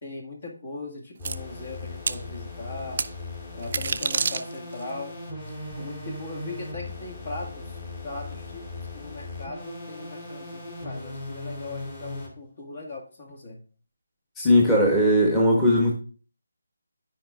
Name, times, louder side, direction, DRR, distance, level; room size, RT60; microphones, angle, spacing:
voice 1, 0.0-3.0 3.5-5.1 5.8-7.8 8.0-13.6, left 3 dB, 45° left, 2 dB, 2.0 m, -39 dB
sound 1, 1.2-12.3, left 2 dB, 30° left, 2.1 m, -38 dB
sound 2, 1.2-1.3 2.1-2.2 3.0-3.1 3.6-4.8, right 5 dB, 45° right, 0.5 m, -27 dB
voice 2, 14.4-15.9, equal, 10° left, -4 dB, 1.3 m, -19 dB
13.0 x 5.0 x 2.5 m, 0.39 s
figure-of-eight pair, 160°, 0 cm